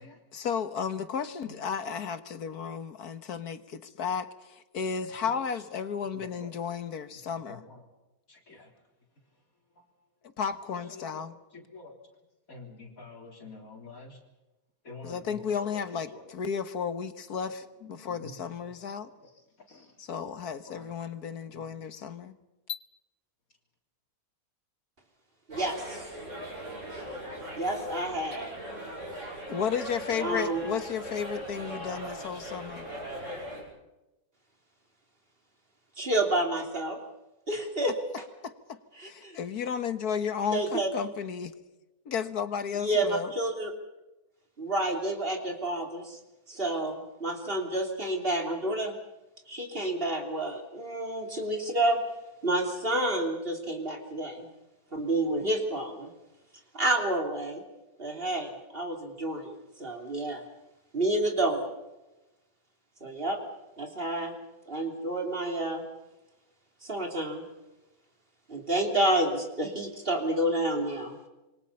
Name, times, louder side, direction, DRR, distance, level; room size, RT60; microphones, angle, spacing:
voice 1, 0.3-7.6 10.4-11.3 15.0-19.1 20.0-22.4 22.7-22.8 29.5-32.9 38.4-41.5 42.1-43.3, left 7 dB, 80° left, 11 dB, 1.9 m, -33 dB
voice 2, 8.3-8.7 11.0-11.1 11.5-11.9 12.5-14.2 14.9-15.2 15.5-15.6 18.1-18.2 19.7-19.8 20.7-20.9, left 3 dB, 60° left, 1 dB, 3.9 m, -47 dB
voice 3, 25.5-26.0 27.5-28.5 30.2-30.6 36.0-37.0 37.5-37.9 39.0-39.4 40.5-40.9 42.8-43.7 44.6-46.2 46.5-48.9 49.5-52.0 52.4-54.5 54.9-56.1 56.7-57.6 58.0-60.4 60.9-61.8 63.0-63.4 63.8-64.3 64.7-65.8 66.8-67.4 68.5-71.2, right 1 dB, 35° right, 3 dB, 3.4 m, -29 dB
sound 1, 25.5-33.6, right 1 dB, 50° right, 8.5 m, -39 dB
27.0 x 23.5 x 5.6 m, 1.0 s
omnidirectional pair, 1.6 m